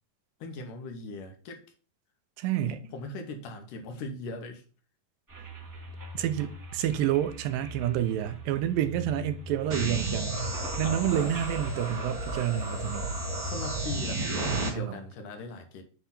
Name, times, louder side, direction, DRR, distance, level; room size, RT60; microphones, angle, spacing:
voice 1, 0.4-1.6 2.9-4.6 10.8-11.4 13.4-15.8, left 2 dB, 75° left, 2.6 m, -39 dB
voice 2, 2.4-2.8 6.1-10.4 10.8-13.1 14.4-15.0, right 11 dB, 90° right, 2.4 m, -29 dB
sound 1, 5.3-12.1, equal, 10° right, 1.0 m, -43 dB
sound 2, 9.7-14.7, right 1 dB, 35° right, 1.6 m, -32 dB
8.0 x 3.4 x 5.7 m
omnidirectional pair, 3.9 m